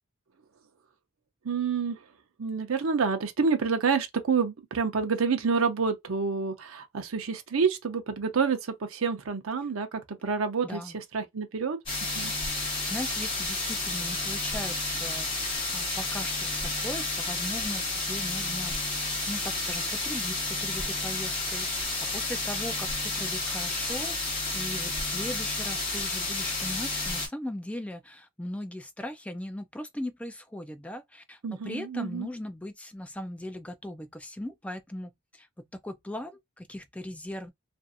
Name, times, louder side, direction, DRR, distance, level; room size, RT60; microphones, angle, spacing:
voice 1, 1.4-2.0 2.4-11.8 12.2-12.3 31.4-32.3, right 5 dB, 80° right, 0.6 m, -28 dB
voice 2, 10.6-11.0 12.5-37.5, left 1 dB, 5° left, 0.3 m, -39 dB
sound 1, 11.9-27.3, left 2 dB, 25° left, 1.2 m, -31 dB
2.6 x 2.4 x 2.4 m
head